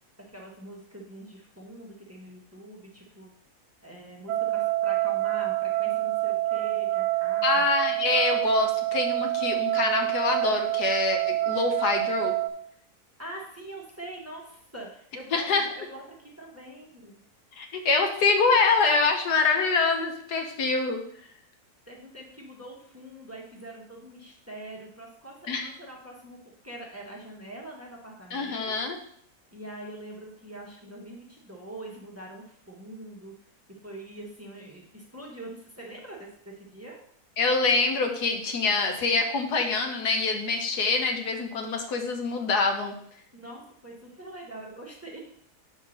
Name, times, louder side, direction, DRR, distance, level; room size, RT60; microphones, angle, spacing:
voice 1, 0.3-3.3 3.8-7.7 13.2-17.2 21.9-25.3 25.6-26.4 26.6-28.7 29.5-33.3 33.8-37.0 43.3-45.2, right 1 dB, 10° right, -2 dB, 1.2 m, -43 dB
sound 1, 4.3-12.5, right 16 dB, 75° right, 1.1 m, -27 dB
voice 2, 7.4-12.4 15.3-15.7 17.6-21.0 25.5-25.7 28.3-29.0 37.4-42.9, left 4 dB, 85° left, 4 dB, 1.5 m, -25 dB
5.7 x 4.3 x 6.2 m, 0.66 s
omnidirectional pair, 1.6 m